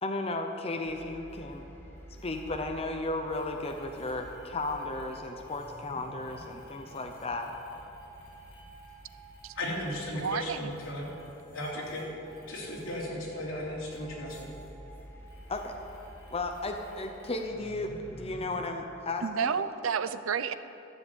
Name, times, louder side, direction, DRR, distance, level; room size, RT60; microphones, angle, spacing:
voice 1, 0.0-1.6 2.1-7.5 15.5-15.7 16.3-19.6, left 2 dB, 30° left, 3 dB, 0.8 m, -34 dB
sound 1, 0.8-18.5, equal, 10° left, 1.6 m, -51 dB
sound 2, 1.3-1.6 2.0-2.9 3.2-13.6 13.8-17.5, right 2 dB, 50° left, 3.3 m, -55 dB
voice 2, 9.5-11.1 11.5-12.1 12.5-14.5, left 1 dB, 80° left, -4 dB, 3.3 m, -36 dB
voice 3, 10.1-10.7 19.2-20.6, right 6 dB, 90° right, 13 dB, 0.5 m, -31 dB
13.5 x 7.6 x 8.2 m, 3.0 s
head